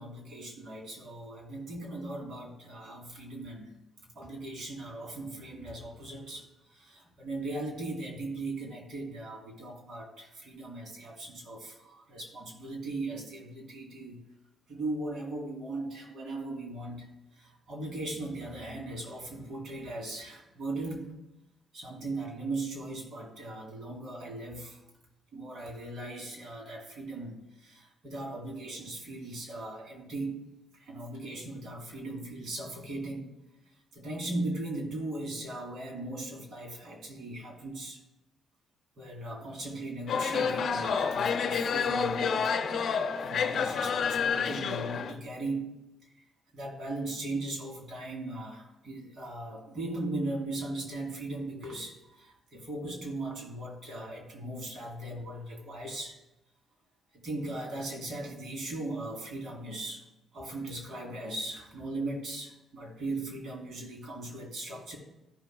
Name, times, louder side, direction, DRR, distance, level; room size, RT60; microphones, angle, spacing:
voice 1, 0.0-3.8 4.1-14.2 14.7-21.1 21.7-24.8 25.3-30.5 30.8-33.3 33.9-38.0 39.0-45.8 46.5-56.2 57.1-60.0 60.3-65.0, right 2 dB, 55° right, -1 dB, 3.1 m, -38 dB
sound 1, 40.1-45.1, left 6 dB, 60° left, 0.7 m, -29 dB
14.5 x 5.8 x 2.3 m, 0.95 s
cardioid pair, 90°, 0 cm